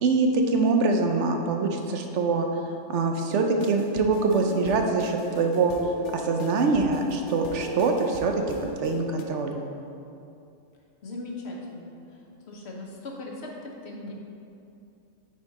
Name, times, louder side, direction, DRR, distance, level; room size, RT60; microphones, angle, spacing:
voice 1, 0.0-2.5 2.9-5.7 6.1-8.3 8.8-9.7, right 4 dB, 75° right, 3 dB, 0.9 m, -24 dB
sound 1, 3.3-9.2, left 3 dB, 75° left, 0.9 m, -39 dB
voice 2, 11.0-14.1, left 2 dB, 60° left, -1 dB, 1.2 m, -39 dB
8.6 x 4.3 x 4.1 m, 2.6 s
omnidirectional pair, 1.3 m